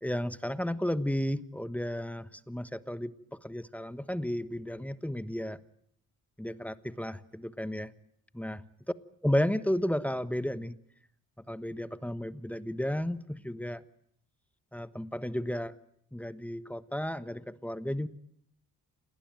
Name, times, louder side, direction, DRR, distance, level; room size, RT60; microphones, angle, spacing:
voice 1, 0.0-5.6 6.4-7.9 8.3-8.6 9.2-10.7 11.5-13.8 14.7-15.7 16.1-18.1, equal, 5° left, 14 dB, 1.1 m, -33 dB
28.5 x 19.5 x 9.0 m, 0.69 s
cardioid pair, 90°, 35 cm